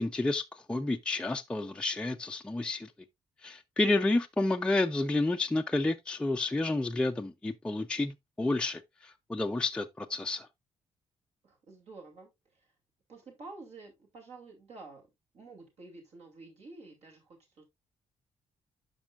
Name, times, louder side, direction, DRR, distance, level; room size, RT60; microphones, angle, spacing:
voice 1, 0.0-2.9 3.4-10.5, left 2 dB, 10° left, 0.4 m, -30 dB
voice 2, 11.4-12.3 13.1-15.1 15.3-17.6, right 3 dB, 65° right, 2.6 m, -50 dB
11.5 x 5.3 x 2.3 m
cardioid pair, 140°, 12 cm